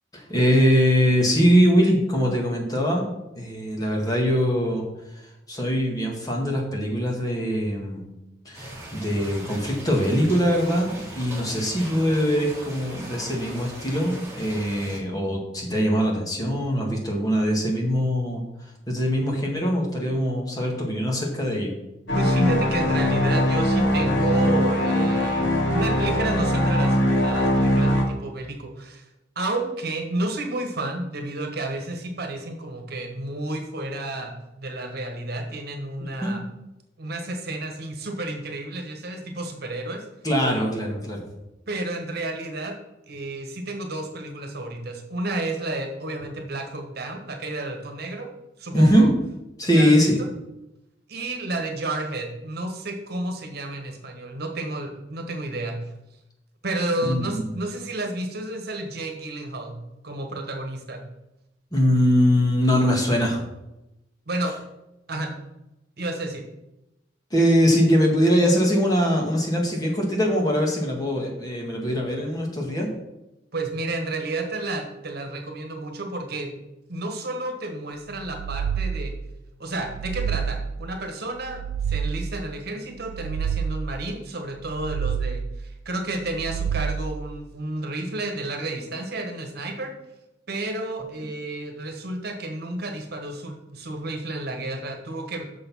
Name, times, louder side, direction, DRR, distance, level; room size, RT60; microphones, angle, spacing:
voice 1, 0.1-4.8 5.1-8.1 8.5-18.4 18.9-21.7 36.2-36.3 40.2-41.2 48.7-49.1 49.6-50.2 57.1-57.4 61.7-63.4 67.3-72.9, equal, 20° left, -1 dB, 1.9 m, -22 dB
sound 1, 8.5-15.0, right 1 dB, 15° right, 2.5 m, -39 dB
sound 2, 22.1-28.0, equal, 75° left, 2.3 m, -21 dB
voice 2, 22.1-29.1 29.3-36.4 37.0-40.0 41.7-42.8 43.1-48.3 48.6-49.1 49.6-50.1 51.1-55.8 56.6-59.8 60.0-61.0 64.3-64.5 65.1-65.4 66.0-66.4 73.5-76.6 76.9-79.2 79.6-81.6 81.9-89.9 90.5-95.4, right 2 dB, 60° right, 4 dB, 1.4 m, -31 dB
sound 3, 78.2-79.3 79.8-80.9 81.4-82.4 83.0-84.1 84.5-85.6 86.2-87.3, right 7 dB, 85° right, 0.4 m, -29 dB
7.0 x 6.7 x 5.5 m, 0.92 s
head